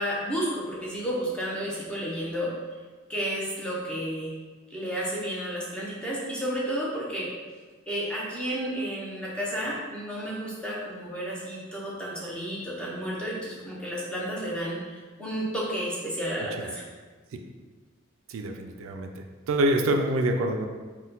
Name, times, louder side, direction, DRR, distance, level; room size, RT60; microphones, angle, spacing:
voice 1, 0.0-2.5 3.1-4.3 4.7-7.3 7.9-16.8, equal, 5° left, -6 dB, 0.7 m, -32 dB
voice 2, 18.3-20.7, right 1 dB, 75° right, 4 dB, 0.3 m, -26 dB
4.1 x 2.2 x 3.8 m, 1.4 s
head